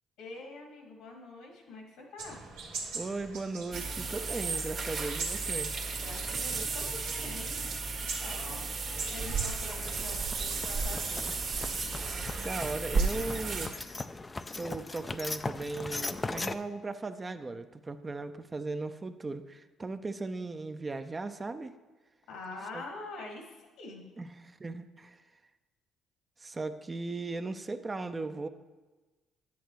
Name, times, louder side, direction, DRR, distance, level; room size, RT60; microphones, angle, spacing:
voice 1, 0.2-2.4 6.0-7.7 8.0-11.4 22.3-24.1, left 3 dB, 80° left, 0 dB, 2.0 m, -45 dB
sound 1, 2.2-13.8, right 4 dB, 90° right, 1.5 m, -42 dB
voice 2, 2.9-5.8 12.4-13.7 14.6-21.7 22.7-22.8 24.2-25.2 26.4-28.5, right 3 dB, 30° right, 9 dB, 0.5 m, -37 dB
sound 2, 3.7-13.7, right 4 dB, 55° right, 1.6 m, -34 dB
sound 3, 9.7-16.5, left 3 dB, 25° left, 0.4 m, -39 dB
10.0 x 8.4 x 3.1 m, 1.2 s
supercardioid pair, 70°, 0 cm